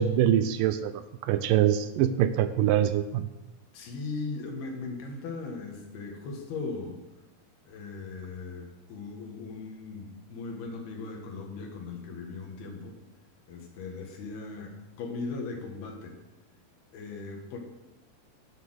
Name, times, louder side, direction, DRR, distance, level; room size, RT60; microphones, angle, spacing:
voice 1, 0.0-3.3, right 10 dB, 80° right, 11 dB, 2.0 m, -24 dB
voice 2, 3.7-7.0 7.7-13.0 13.5-16.2 16.9-17.6, left 3 dB, 85° left, 1 dB, 3.7 m, -38 dB
11.0 x 9.7 x 6.4 m, 1.0 s
omnidirectional pair, 4.4 m